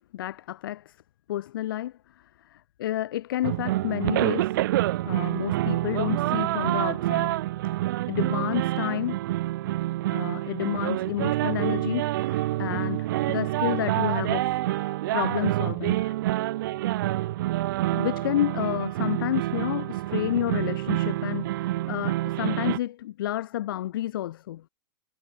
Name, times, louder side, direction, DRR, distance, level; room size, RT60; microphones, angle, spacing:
voice 1, 0.1-0.9 1.3-4.5 5.0-7.4 8.1-9.2 10.1-16.2 17.9-24.7, left 13 dB, 65° left, 3.3 m, -30 dB
sound 1, 3.4-22.8, right 16 dB, 60° right, 0.4 m, -27 dB
hypercardioid pair, 100°, 13 cm